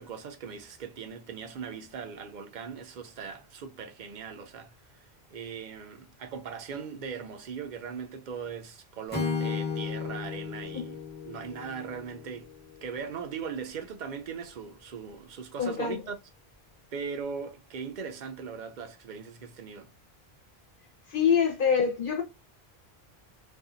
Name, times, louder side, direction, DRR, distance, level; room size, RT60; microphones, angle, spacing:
voice 1, 0.0-5.0 5.3-12.5 12.8-16.2 16.9-19.9, right 6 dB, 55° right, 0.6 m, -39 dB
Acoustic guitar / Strum, 9.1-13.1, left 5 dB, 10° left, 0.9 m, -35 dB
voice 2, 15.6-16.0 21.1-22.2, left 7 dB, 55° left, 0.9 m, -25 dB
2.6 x 2.3 x 2.5 m
omnidirectional pair, 1.1 m